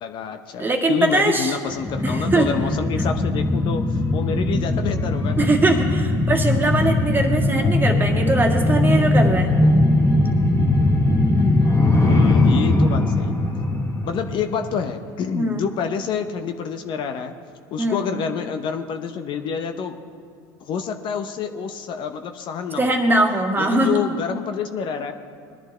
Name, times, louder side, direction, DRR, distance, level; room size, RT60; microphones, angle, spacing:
voice 1, 0.0-5.5 12.0-13.4 14.1-17.3 17.7-19.9 20.6-23.0 23.6-25.1, left 7 dB, 50° left, 7 dB, 0.9 m, -27 dB
voice 2, 0.6-1.6 2.0-2.5 5.4-9.6 15.4-15.6 17.8-18.1 22.8-24.0, right 2 dB, 20° right, 2 dB, 2.0 m, -21 dB
sound 1, 1.7-14.9 15.3-15.4, left 2 dB, 30° left, 1.9 m, -20 dB
20.5 x 11.0 x 3.3 m, 2.5 s
supercardioid pair, 90°, 10 cm